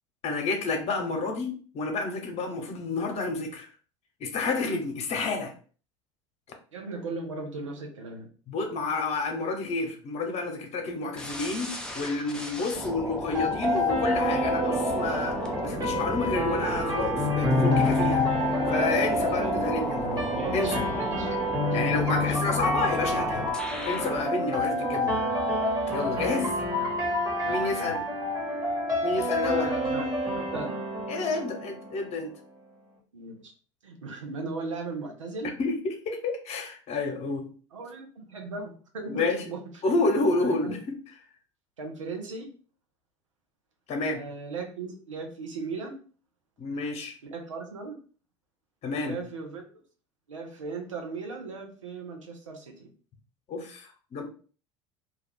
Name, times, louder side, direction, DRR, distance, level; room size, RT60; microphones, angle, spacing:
voice 1, 0.2-3.7 4.2-5.5 8.5-18.3 18.7-20.2 20.5-20.9 21.7-23.5 23.8-25.2 25.9-26.6 27.5-28.0 29.0-29.7 31.1-32.3 35.6-37.5 39.1-39.4 39.8-40.8 43.9-44.2 46.6-47.1 48.8-49.2 53.5-54.2, left 3 dB, 45° left, 4 dB, 0.8 m, -30 dB
voice 2, 6.7-8.3 19.2-19.9 20.3-21.6 22.1-22.5 24.5-24.8 26.5-27.0 27.4-28.1 29.5-30.8 33.1-33.5 33.8-35.5 37.7-39.8 40.3-40.8 41.8-42.5 44.1-46.0 47.2-48.0 49.0-49.7 50.3-52.9, right 3 dB, 90° right, 2 dB, 0.6 m, -38 dB
sound 1, 11.2-24.3, left 1 dB, 5° left, 0.5 m, -34 dB
sound 2, 13.3-32.3, left 1 dB, 25° right, 1.2 m, -28 dB
2.3 x 2.3 x 3.2 m, 0.40 s
hypercardioid pair, 70°, 16 cm